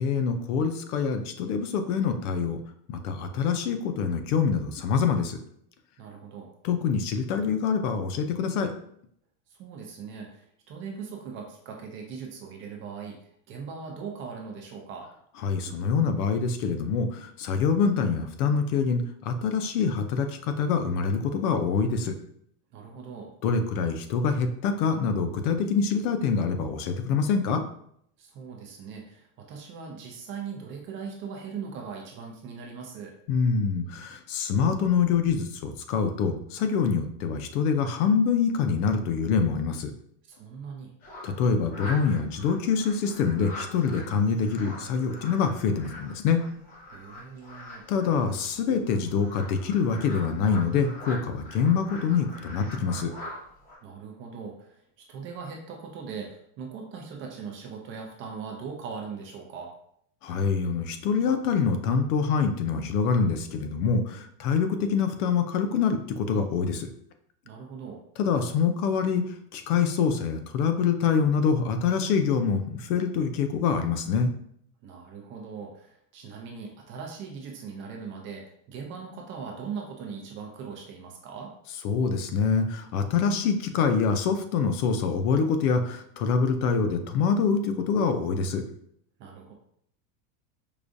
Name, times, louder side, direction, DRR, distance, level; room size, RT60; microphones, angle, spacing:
voice 1, 0.0-2.6 2.9-5.4 6.6-8.7 15.4-22.1 23.4-27.6 33.3-39.9 41.2-46.4 47.9-53.1 60.2-66.9 68.2-69.2 69.5-74.3 81.8-88.6, left 5 dB, 75° left, 7 dB, 0.6 m, -25 dB
voice 2, 6.0-6.5 9.5-15.1 22.7-23.3 28.2-33.1 40.3-40.9 46.9-47.9 53.8-54.8 55.1-59.7 67.4-68.0 74.8-81.5 89.2-89.5, right 6 dB, 30° right, 0 dB, 0.5 m, -40 dB
sound 1, 41.0-53.8, left 1 dB, 20° left, 0.6 m, -43 dB
4.9 x 2.3 x 2.5 m, 0.68 s
supercardioid pair, 155°, 45 cm